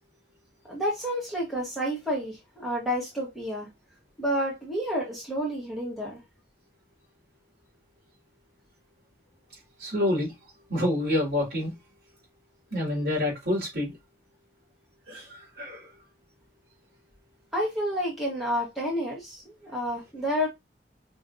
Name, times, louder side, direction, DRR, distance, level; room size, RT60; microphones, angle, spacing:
voice 1, 0.7-3.7 4.2-6.2 17.5-20.5, equal, ahead, 1.5 m, -30 dB
voice 2, 9.8-10.3 10.7-11.7 12.7-13.9 15.1-15.9, left 1 dB, 65° right, 3.1 m, -27 dB
5.0 x 3.1 x 2.8 m
head